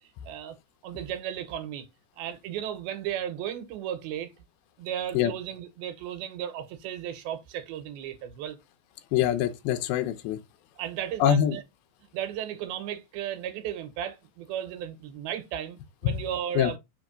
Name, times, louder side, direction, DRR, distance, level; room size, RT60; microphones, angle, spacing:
voice 1, 0.3-0.6 0.8-1.9 2.2-4.3 4.8-8.6 10.8-11.6 12.1-16.8, right 10 dB, 85° right, 2.9 m, -35 dB
voice 2, 9.1-10.4 11.2-11.6 16.0-16.2 16.6-16.7, left 10 dB, 90° left, 2.6 m, -24 dB
6.3 x 3.0 x 5.0 m
omnidirectional pair, 4.2 m